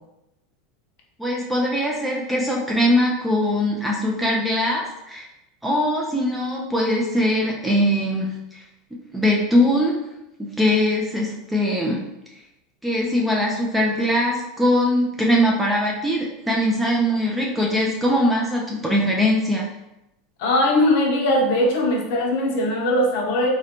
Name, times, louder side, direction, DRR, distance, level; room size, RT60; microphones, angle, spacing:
voice 1, 1.2-5.3 5.6-8.6 9.1-10.0 10.4-12.0 12.8-19.6, left 1 dB, 5° right, -2 dB, 0.3 m, -21 dB
voice 2, 20.4-23.5, left 1 dB, 55° left, -1 dB, 0.8 m, -20 dB
3.8 x 2.1 x 2.9 m, 0.89 s
supercardioid pair, 170°, 0 cm